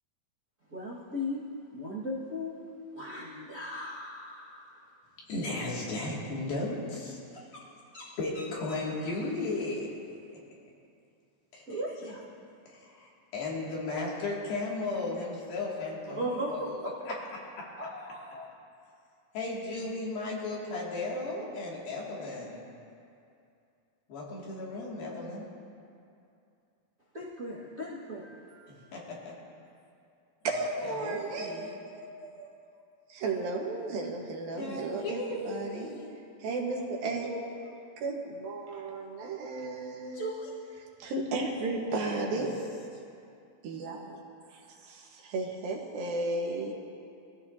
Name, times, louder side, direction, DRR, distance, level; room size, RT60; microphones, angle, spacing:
voice 1, 0.7-1.4 1.7-2.6 2.9-4.7 7.3-7.6 7.9-8.1 8.3-8.8 11.7-12.2 16.1-16.9 17.8-18.5 27.1-28.6 40.1-40.5, equal, 35° right, -9 dB, 1.3 m, -37 dB
voice 2, 5.3-7.2 8.2-9.9 11.5-11.6 12.7-16.8 17.1-17.2 19.3-22.6 24.1-25.5 28.7-29.3 30.8-31.7 34.6-36.0 41.9-42.5, left 2 dB, 75° left, -5 dB, 4.2 m, -35 dB
voice 3, 30.4-32.5 33.1-35.9 36.4-37.3 38.0-40.3 41.0-42.7 43.6-44.2 44.5-46.7, right 3 dB, 75° right, -1 dB, 3.2 m, -34 dB
23.0 x 15.5 x 2.8 m, 2.5 s
omnidirectional pair, 4.2 m